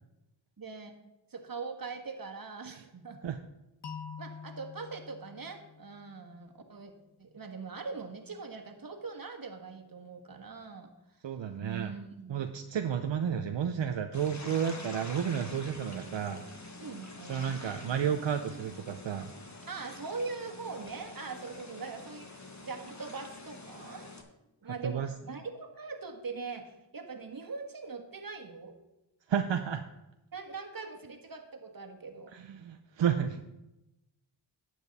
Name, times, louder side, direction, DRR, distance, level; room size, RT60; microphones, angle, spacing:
voice 1, 0.6-0.9 1.3-3.2 4.2-6.9 7.2-10.9 11.6-12.4 16.8-17.6 19.7-24.1 24.6-28.8 30.3-32.3, right 4 dB, 50° right, 4 dB, 1.6 m, -42 dB
sound 1, 3.8-6.7, left 6 dB, 65° left, 1.2 m, -47 dB
voice 2, 11.2-11.9 12.3-16.4 17.3-19.3 24.8-25.1 29.3-29.8 32.3-33.4, right 8 dB, 75° right, 6 dB, 0.7 m, -31 dB
sound 2, 14.1-24.2, left 2 dB, 40° left, 1.7 m, -47 dB
12.0 x 8.0 x 4.1 m, 0.95 s
cardioid pair, 50°, 44 cm